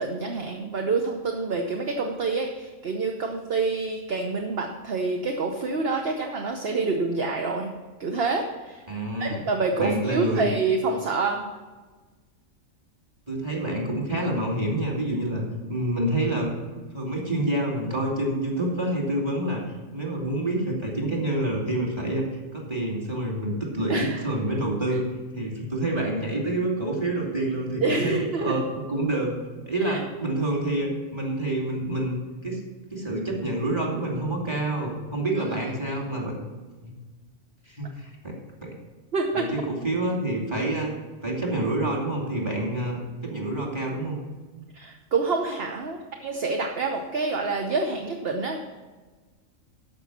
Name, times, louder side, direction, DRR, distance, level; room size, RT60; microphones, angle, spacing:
voice 1, 0.0-7.7 8.0-8.8 9.2-11.4 23.9-24.2 27.8-28.6 29.8-30.0 39.1-39.5 44.7-48.6, right 3 dB, 50° right, 3 dB, 1.1 m, -27 dB
voice 2, 8.9-9.4 9.8-10.5 13.3-16.6 16.9-25.1 25.3-29.3 29.7-32.2 32.4-32.6 32.9-36.4 36.8-36.9 37.7-38.7 39.3-40.9 41.2-44.2, right 1 dB, 20° right, -1 dB, 2.6 m, -27 dB
13.0 x 5.5 x 7.3 m, 1.3 s
omnidirectional pair, 1.4 m